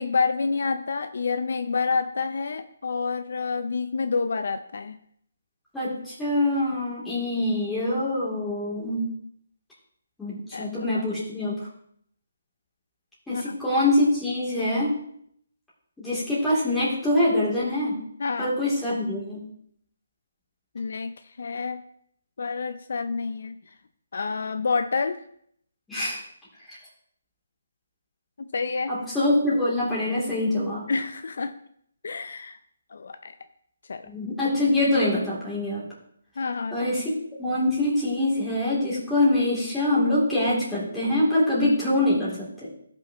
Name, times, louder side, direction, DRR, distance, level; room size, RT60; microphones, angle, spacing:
voice 1, 0.0-5.0 10.5-11.0 13.3-13.6 18.2-18.5 20.7-21.1 21.4-21.8 22.4-23.5 24.1-25.2 28.4-28.9 30.9-31.5 32.0-32.6 32.9-33.4 33.9-34.1 36.4-36.8, left 4 dB, 65° left, 9 dB, 0.5 m, -28 dB
voice 2, 5.7-9.0 10.2-11.6 13.3-15.0 16.0-18.0 18.4-19.4 25.9-26.2 28.9-30.8 34.1-35.8 36.7-37.1 37.4-42.5, left 1 dB, 5° left, -10 dB, 3.0 m, -24 dB
16.0 x 5.6 x 3.0 m, 0.67 s
hypercardioid pair, 165°, 0 cm